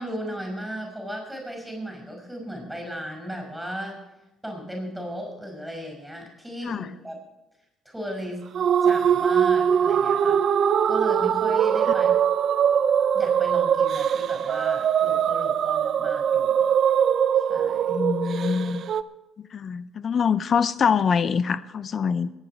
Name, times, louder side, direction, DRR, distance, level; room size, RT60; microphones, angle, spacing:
voice 1, 0.0-4.0 4.4-7.2 7.9-8.4 8.8-10.4 10.9-12.3 13.1-16.6 17.3-18.0, equal, 5° right, 2 dB, 5.4 m, -36 dB
sound 1, 8.5-19.0, right 8 dB, 60° right, 0.5 m, -22 dB
voice 2, 17.9-18.9 19.5-22.3, left 6 dB, 50° left, 16 dB, 0.5 m, -24 dB
21.0 x 8.9 x 4.6 m, 1.0 s
supercardioid pair, 75°, 0 cm